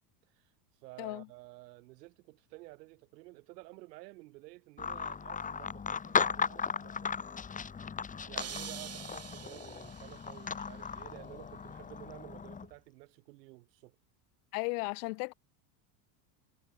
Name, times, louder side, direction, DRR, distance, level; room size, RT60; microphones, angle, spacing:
voice 1, 0.8-7.1 8.3-14.0, right 21 dB, 85° right, 5.8 m, -52 dB
sound 1, 4.8-12.7, left 6 dB, 15° left, 1.1 m, -36 dB
sound 2, 8.4-10.4, right 8 dB, 30° right, 6.5 m, -45 dB
voice 2, 14.5-15.3, left 32 dB, 75° left, 3.0 m, -35 dB
supercardioid pair, 120°, 48 cm